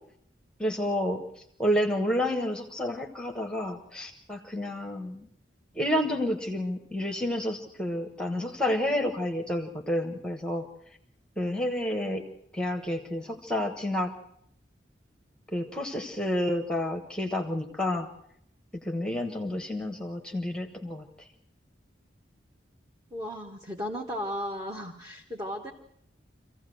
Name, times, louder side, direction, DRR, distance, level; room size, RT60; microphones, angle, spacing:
voice 1, 0.6-1.2 1.6-5.3 5.8-10.7 11.4-12.2 12.5-14.1 15.5-18.1 18.8-21.0, left 1 dB, 5° left, 5 dB, 1.1 m, -30 dB
voice 2, 23.1-25.7, equal, 20° right, 0 dB, 1.4 m, -35 dB
24.5 x 15.5 x 7.7 m, 0.73 s
head